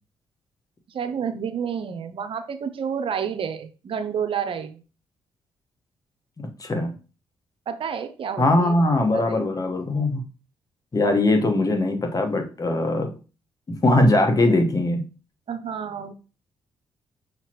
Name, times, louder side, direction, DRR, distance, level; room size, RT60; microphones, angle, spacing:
voice 1, 0.9-4.8 7.7-8.8 9.1-9.4 15.5-16.1, right 7 dB, 55° right, 9 dB, 0.6 m, -30 dB
voice 2, 6.4-6.9 8.4-10.2 10.9-13.1 13.7-15.0, left 2 dB, 35° left, 4 dB, 1.2 m, -21 dB
5.6 x 2.9 x 3.0 m, 0.34 s
hypercardioid pair, 50°, 11 cm